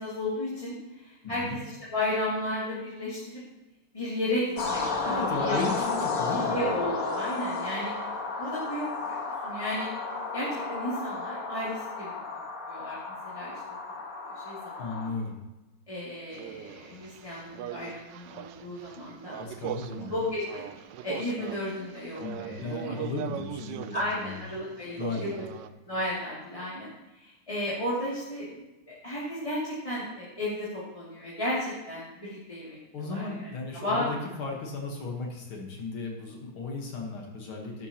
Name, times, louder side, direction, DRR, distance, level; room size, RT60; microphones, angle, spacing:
voice 1, 0.0-3.4 3.9-5.6 6.5-7.9 8.4-9.9 10.3-12.1 12.7-13.0 13.2-13.6 14.2-15.1 15.9-19.4 20.1-20.6 21.0-23.0 23.9-25.4 25.9-28.6 28.9-33.5 33.7-34.0, left 1 dB, 15° left, -10 dB, 2.6 m, -34 dB
voice 2, 1.2-1.6 5.0-6.6 14.8-15.4 19.4-20.1 22.2-24.4 25.0-25.6 32.9-37.9, left 3 dB, 75° left, 0 dB, 2.3 m, -35 dB
sound 1, 4.6-15.1, left 4 dB, 45° left, 1.7 m, -33 dB
sound 2, 16.3-25.7, right 11 dB, 70° right, 1.1 m, -40 dB
13.0 x 11.5 x 3.0 m, 1.0 s
omnidirectional pair, 2.3 m